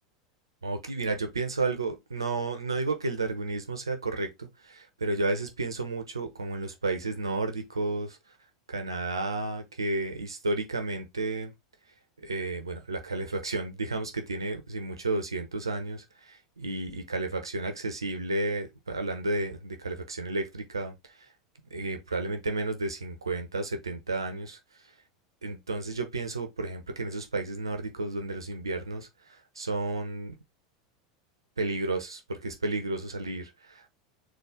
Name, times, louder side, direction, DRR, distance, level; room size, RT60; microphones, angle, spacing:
voice 1, 0.6-8.2 8.7-11.5 12.2-21.3 21.7-24.6 25.4-30.4 31.6-33.9, right 2 dB, 85° right, 0.9 m, -32 dB
4.3 x 2.7 x 3.6 m
figure-of-eight pair, 85°, 2 cm